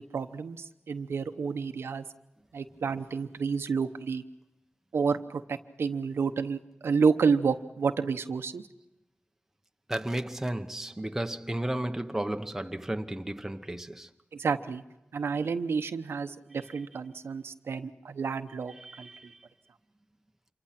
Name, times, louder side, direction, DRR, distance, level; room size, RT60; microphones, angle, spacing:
voice 1, 0.0-2.0 2.5-4.2 4.9-8.6 14.3-14.8 15.1-19.1, right 5 dB, 85° right, 0.9 m, -30 dB
voice 2, 9.9-14.1 18.8-19.4, right 1 dB, 10° right, 0.9 m, -33 dB
27.0 x 24.0 x 5.9 m
wide cardioid pair, 110°, 4 cm